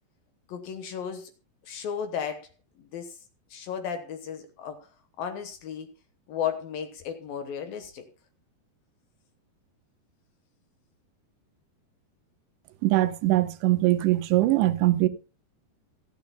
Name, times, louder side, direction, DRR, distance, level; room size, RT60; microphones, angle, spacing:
voice 1, 0.5-1.3 1.7-2.5 2.8-3.2 3.5-4.9 5.2-5.9 6.3-8.1, left 8 dB, 65° left, 2.6 m, -34 dB
voice 2, 12.8-15.1, right 16 dB, 90° right, 3.1 m, -22 dB
25.5 x 8.8 x 2.2 m
omnidirectional pair, 4.9 m